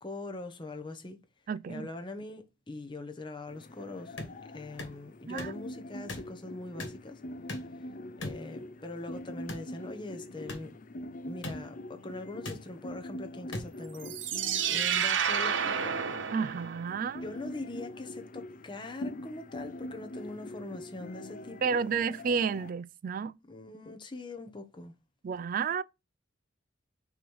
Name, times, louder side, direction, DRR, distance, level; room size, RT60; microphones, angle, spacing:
voice 1, 0.0-1.2 1.7-4.2 4.5-7.2 8.2-10.8 11.3-14.2 14.7-16.3 17.2-21.8 23.5-24.9, left 2 dB, 25° left, 0.9 m, -42 dB
voice 2, 1.5-1.9 5.3-5.5 16.3-17.2 21.6-23.3 25.2-25.8, right 6 dB, 45° right, 0.3 m, -31 dB
sound 1, 3.5-22.7, left 1 dB, 45° left, 0.5 m, -44 dB
sound 2, 4.2-4.3 4.8-4.9 5.4-5.6 6.1-6.3 6.8-7.0 7.5-7.7 8.2-8.4 9.5-9.7 10.5-10.6 11.4-11.6 12.4-12.6 13.5-13.7, left 2 dB, 75° left, 2.1 m, -38 dB
sound 3, 13.9-17.1, right 8 dB, 75° right, 0.7 m, -30 dB
6.0 x 3.2 x 5.3 m
head